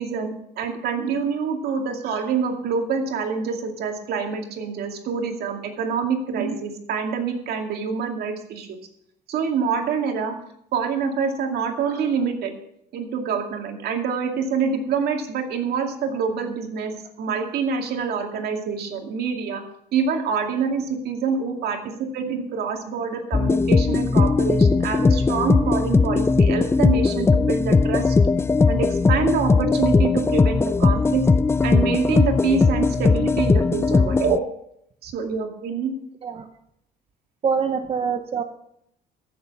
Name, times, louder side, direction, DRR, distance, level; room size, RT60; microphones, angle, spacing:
voice 1, 0.0-8.8 9.3-10.4 10.7-12.5 12.9-19.6 19.9-28.2 28.7-31.3 31.6-34.4 35.0-35.9, right 6 dB, 70° right, 3 dB, 2.3 m, -26 dB
sound 1, 23.3-34.4, left 4 dB, 15° left, 0.3 m, -19 dB
voice 2, 37.4-38.4, right 6 dB, 35° right, 6 dB, 0.9 m, -24 dB
15.0 x 7.0 x 5.9 m, 0.74 s
cardioid pair, 110°, 17 cm